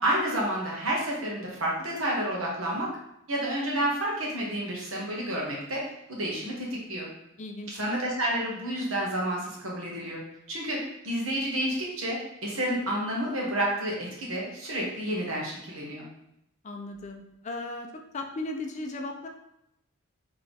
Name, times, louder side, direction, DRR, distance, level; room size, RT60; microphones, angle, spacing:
voice 1, 0.0-2.9 3.3-5.8 6.1-7.1 7.7-10.2 10.5-10.8 11.0-16.1, right 1 dB, 70° right, -3 dB, 1.3 m, -30 dB
voice 2, 7.4-7.8 16.6-17.9 18.1-19.3, left 2 dB, 35° left, 4 dB, 0.4 m, -37 dB
4.2 x 3.3 x 3.4 m, 0.82 s
head